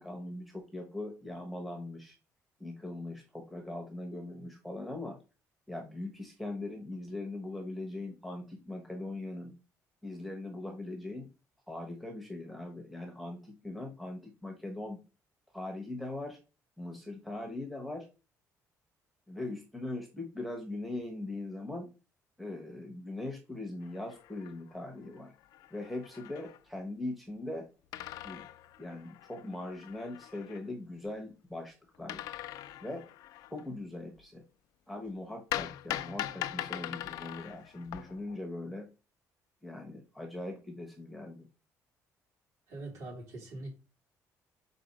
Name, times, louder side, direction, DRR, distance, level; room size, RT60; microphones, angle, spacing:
voice 1, 0.0-2.2 2.6-5.2 5.7-9.5 10.0-11.3 11.7-15.0 15.5-16.4 16.8-18.1 19.3-21.9 22.4-25.3 25.7-27.7 28.2-28.4 28.8-32.2 32.8-33.1 33.5-34.4 34.9-38.9 39.6-41.5, left 2 dB, ahead, 2 dB, 0.9 m, -40 dB
sound 1, 23.8-24.8 25.2-25.3 25.4-26.6 27.9-30.6 32.1-33.6 35.5-38.4, left 13 dB, 90° left, 0.4 m, -41 dB
voice 2, 42.7-43.8, right 2 dB, 60° right, 0 dB, 2.8 m, -42 dB
5.0 x 4.2 x 5.1 m, 0.31 s
cardioid pair, 175°, 6 cm